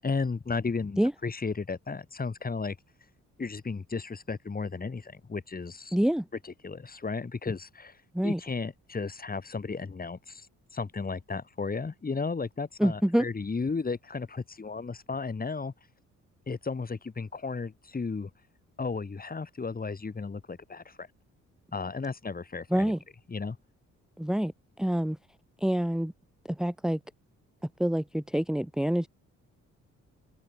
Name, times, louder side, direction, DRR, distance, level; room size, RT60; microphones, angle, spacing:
voice 1, 0.0-2.8 3.4-6.0 6.4-7.9 8.2-10.5 10.7-15.7 16.5-18.3 18.8-21.1 21.7-22.9 23.3-23.6, left 4 dB, 30° left, 6.2 m, -34 dB
voice 2, 5.9-6.2 8.1-8.4 12.8-13.2 22.7-23.0 24.2-24.5 24.8-25.2 25.6-26.1 26.5-27.0 27.8-29.1, equal, ahead, 1.1 m, -26 dB
cardioid pair, 90°, 30 cm